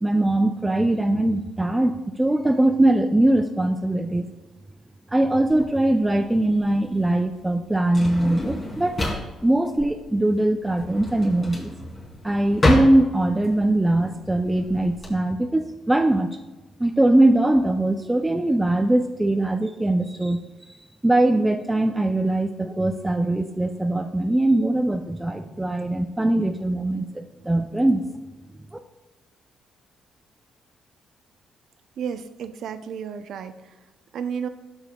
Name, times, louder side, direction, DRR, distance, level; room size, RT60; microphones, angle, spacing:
voice 1, 0.0-4.3 5.1-9.0 9.4-11.7 12.2-16.4 16.8-20.4 21.0-28.1 28.7-28.8, right 1 dB, 10° right, 4 dB, 0.5 m, -21 dB
Drawer open or close, 5.5-15.1, left 1 dB, 30° left, 2.6 m, -28 dB
voice 2, 32.0-33.6 34.1-34.5, right 7 dB, 70° right, 10 dB, 0.5 m, -32 dB
12.0 x 7.1 x 2.3 m, 1.2 s
cardioid pair, 90°, 0 cm